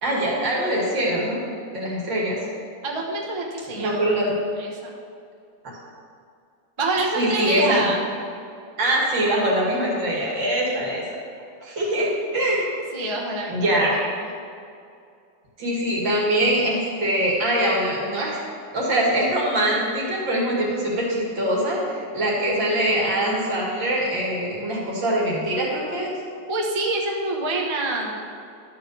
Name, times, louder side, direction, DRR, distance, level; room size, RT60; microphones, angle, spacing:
voice 1, 0.0-1.4 1.7-2.4 3.8-4.4 5.6-5.7 7.1-8.0 8.8-11.0 11.6-12.7 13.5-13.9 15.6-18.4 18.7-26.1, right 1 dB, 80° right, -5 dB, 3.0 m, -23 dB
voice 2, 2.8-4.2 4.6-4.9 6.8-8.0 12.9-14.3 26.5-28.3, right 2 dB, 20° right, 0 dB, 0.9 m, -27 dB
11.5 x 4.6 x 6.9 m, 2.4 s
omnidirectional pair, 2.0 m